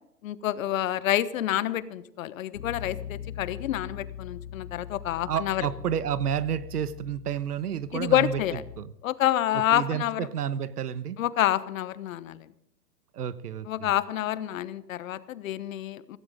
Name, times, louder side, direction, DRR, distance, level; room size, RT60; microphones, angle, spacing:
voice 1, 0.2-5.7 7.9-8.6 9.0-10.3 11.2-12.5 13.7-16.2, left 13 dB, 60° left, 16 dB, 1.2 m, -28 dB
Bass guitar, 2.5-8.8, left 9 dB, 85° left, 2.2 m, -41 dB
voice 2, 5.3-8.4 8.8-8.9 9.7-11.2 13.1-13.9, right 9 dB, 75° right, 16 dB, 1.2 m, -30 dB
17.0 x 16.5 x 3.8 m, 0.80 s
hypercardioid pair, 120°, 46 cm